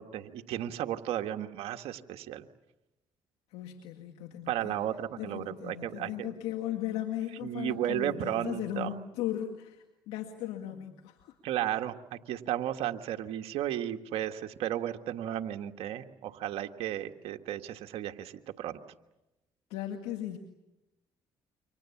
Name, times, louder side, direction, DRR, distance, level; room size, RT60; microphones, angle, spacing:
voice 1, 0.0-2.5 4.5-6.3 7.4-8.9 11.4-18.8, right 11 dB, 75° right, 5 dB, 1.6 m, -34 dB
voice 2, 3.5-4.8 5.2-11.3 19.7-20.4, left 12 dB, 85° left, 4 dB, 2.1 m, -37 dB
29.0 x 25.5 x 7.2 m, 0.98 s
supercardioid pair, 70°, 10 cm